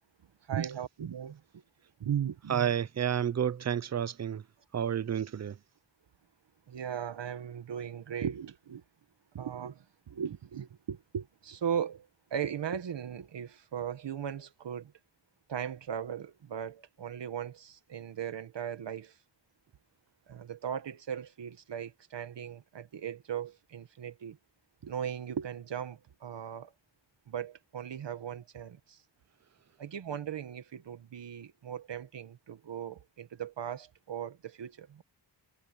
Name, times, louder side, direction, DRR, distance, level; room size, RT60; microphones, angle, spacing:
voice 1, 0.5-1.6 2.0-2.6 6.7-8.8 9.3-14.9 15.5-19.2 20.3-24.4 24.8-26.7 27.3-29.0 29.8-35.0, right 8 dB, 75° right, 1.8 m, -38 dB
voice 2, 2.5-4.4 4.7-5.6, right 9 dB, 40° right, 0.7 m, -30 dB
wide cardioid pair, 135°, 43 cm